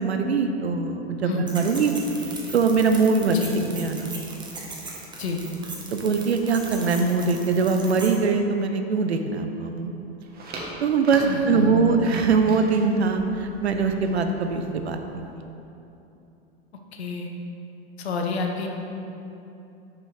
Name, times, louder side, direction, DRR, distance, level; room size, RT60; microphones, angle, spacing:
voice 1, 0.0-1.9 2.2-3.4 3.7-4.1 5.9-9.9 10.8-15.0, right 4 dB, 90° right, 6 dB, 0.7 m, -22 dB
sound 1, 1.5-8.2, right 2 dB, 15° right, 1.3 m, -38 dB
sound 2, 10.2-15.3, right 2 dB, 30° right, 1.5 m, -41 dB
voice 2, 11.2-11.9 16.9-17.3 18.0-18.7, left 5 dB, 80° left, 2 dB, 1.0 m, -28 dB
6.7 x 5.4 x 4.9 m, 2.9 s
hypercardioid pair, 95°, 31 cm